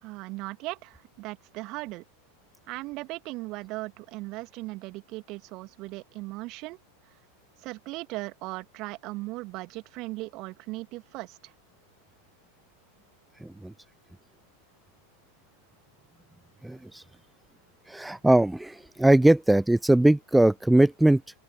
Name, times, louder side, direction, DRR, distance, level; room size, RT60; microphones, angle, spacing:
voice 1, 0.0-2.0 2.7-6.8 7.6-11.5, right 22 dB, 40° right, 2.4 m, -38 dB
voice 2, 13.4-13.7 16.6-17.0 17.9-21.2, right 1 dB, 5° right, 0.5 m, -21 dB
open air
figure-of-eight pair, 90°, 0 cm